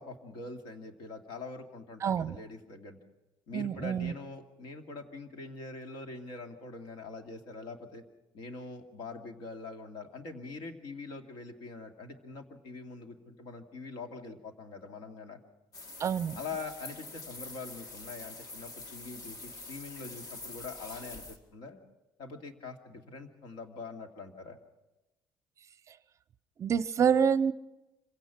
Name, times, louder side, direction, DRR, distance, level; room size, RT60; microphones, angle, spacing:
voice 1, 0.0-3.0 3.5-8.0 8.3-15.4 16.3-21.8 22.2-24.6, left 3 dB, 70° left, 4 dB, 2.4 m, -44 dB
voice 2, 2.0-2.4 3.5-4.1 16.0-16.4 26.6-27.5, right 7 dB, 35° right, 16 dB, 0.6 m, -27 dB
sound 1, 15.7-21.4, left 2 dB, 50° left, 2.2 m, -45 dB
25.5 x 17.0 x 6.0 m, 1.0 s
cardioid pair, 140°, 8 cm